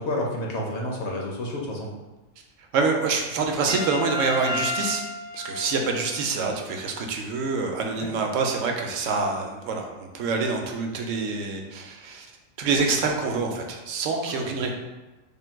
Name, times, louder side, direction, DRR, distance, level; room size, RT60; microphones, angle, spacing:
voice 1, 0.0-1.9 8.0-8.1 14.2-14.5, left 1 dB, 60° left, -1 dB, 0.9 m, -30 dB
voice 2, 2.7-5.0 5.3-12.3 12.6-14.7, right 4 dB, 75° right, 2 dB, 0.9 m, -26 dB
Trumpet, 3.7-6.4, left 1 dB, 80° left, 1.2 m, -32 dB
3.6 x 2.2 x 4.4 m, 1.1 s
omnidirectional pair, 1.4 m